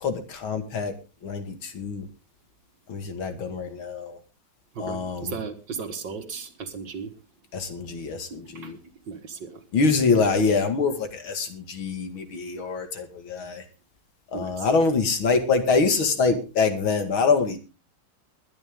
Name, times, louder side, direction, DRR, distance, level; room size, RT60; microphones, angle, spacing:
voice 1, 0.0-0.9 1.2-2.0 2.9-4.2 4.8-5.3 7.5-8.8 9.7-13.6 14.3-17.6, left 4 dB, 75° left, 8 dB, 2.9 m, -25 dB
voice 2, 4.7-7.1 8.5-8.7 9.1-9.6 14.3-14.7, right 5 dB, 60° right, 8 dB, 2.3 m, -35 dB
20.5 x 11.0 x 3.7 m, 0.31 s
omnidirectional pair, 2.3 m